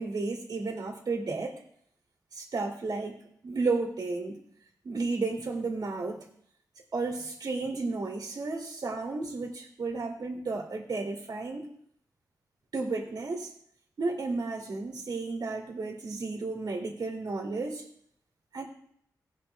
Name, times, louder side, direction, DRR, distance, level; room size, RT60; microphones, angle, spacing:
voice 1, 0.0-1.6 2.3-4.4 4.8-6.2 6.9-11.7 12.7-13.5 14.0-17.8 18.5-18.7, right 3 dB, 70° right, -1 dB, 2.6 m, -33 dB
16.5 x 6.3 x 3.3 m, 0.67 s
cardioid pair, 55°, 7 cm